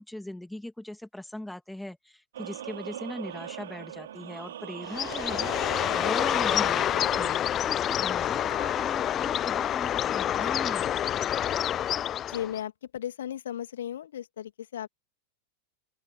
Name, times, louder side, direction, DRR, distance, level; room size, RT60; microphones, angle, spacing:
voice 1, 0.0-5.5 5.9-7.3 7.6-11.1, left 1 dB, 5° left, 2.7 m, -40 dB
sound 1, 2.3-7.4, right 11 dB, 60° right, 5.8 m, -40 dB
Bird, 4.9-12.6, left 10 dB, 30° left, 0.4 m, -27 dB
sound 2, 7.9-12.0, left 4 dB, 80° left, 4.4 m, -49 dB
voice 2, 12.3-14.9, left 10 dB, 60° left, 2.7 m, -35 dB
open air
figure-of-eight pair, 90°, 0 cm